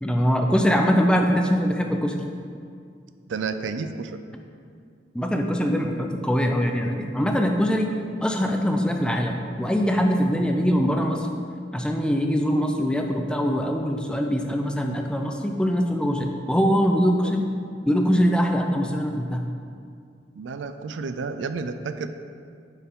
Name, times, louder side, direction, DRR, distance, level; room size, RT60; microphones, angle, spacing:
voice 1, 0.0-2.1 5.1-7.9 8.2-11.3 11.7-17.5 17.9-19.4, equal, 5° left, 3 dB, 0.4 m, -22 dB
voice 2, 3.3-4.2 17.2-17.3 20.4-22.1, right 4 dB, 85° right, 10 dB, 0.4 m, -31 dB
10.0 x 4.6 x 3.7 m, 2.3 s
head